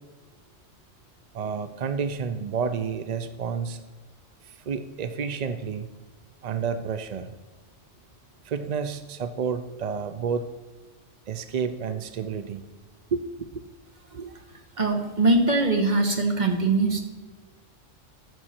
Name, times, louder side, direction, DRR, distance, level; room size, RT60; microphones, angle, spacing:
voice 1, 1.3-3.8 4.7-5.9 6.4-7.3 8.4-10.5 11.3-12.6 13.1-13.2 13.5-13.6 14.1-14.3, right 6 dB, 55° right, 10 dB, 0.4 m, -30 dB
voice 2, 14.8-17.0, right 2 dB, 40° right, 4 dB, 1.4 m, -22 dB
13.5 x 6.4 x 4.3 m, 1.3 s
omnidirectional pair, 1.3 m